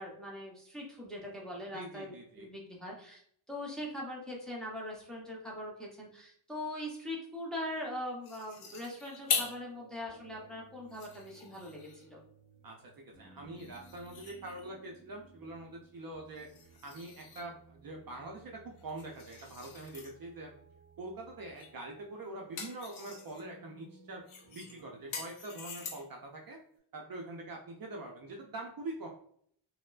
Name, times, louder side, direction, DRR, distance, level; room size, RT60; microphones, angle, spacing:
voice 1, 0.0-3.2 3.5-12.2, left 1 dB, ahead, -3 dB, 0.7 m, -41 dB
voice 2, 1.7-2.5 12.6-16.5 16.8-20.5 21.0-24.2 24.5-26.6 26.9-29.1, right 2 dB, 45° right, 0 dB, 0.5 m, -44 dB
sound 1, 8.2-9.7 10.2-10.3 10.8-12.1 13.6-14.8 16.4-17.6 18.8-20.1 21.6-21.8 22.2-23.5 24.3-26.2, left 6 dB, 80° left, 0.7 m, -41 dB
sound 2, 9.3-25.2, right 3 dB, 40° left, 1.3 m, -60 dB
4.2 x 2.1 x 2.4 m, 0.64 s
wide cardioid pair, 150°, 49 cm